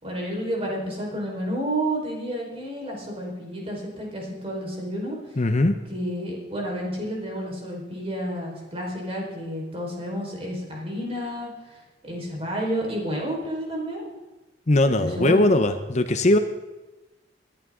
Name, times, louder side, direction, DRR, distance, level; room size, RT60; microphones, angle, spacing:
voice 1, 0.0-5.2 5.9-14.1 15.0-15.4, equal, 35° right, -2 dB, 4.6 m, -30 dB
voice 2, 5.4-5.7 14.7-16.4, left 1 dB, 40° left, 9 dB, 0.8 m, -20 dB
21.5 x 11.0 x 3.8 m, 1.1 s
head